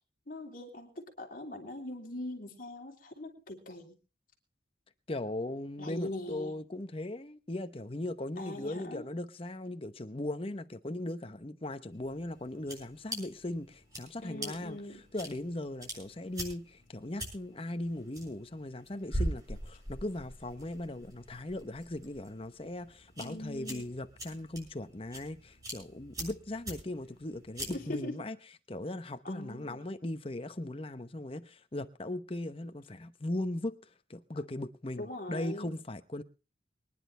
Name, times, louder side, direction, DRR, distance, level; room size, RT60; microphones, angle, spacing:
voice 1, 0.3-3.9 5.8-6.6 8.4-9.0 14.2-15.0 23.2-23.8 27.7-28.1 29.2-29.8 35.0-35.7, left 1 dB, 45° left, 3.2 m, -41 dB
voice 2, 5.1-14.8 15.1-28.4 28.7-33.8 34.1-36.2, left 1 dB, 30° left, 0.9 m, -38 dB
sound 1, 11.9-28.0, right 1 dB, 20° right, 6.8 m, -43 dB
24.0 x 10.5 x 3.3 m
head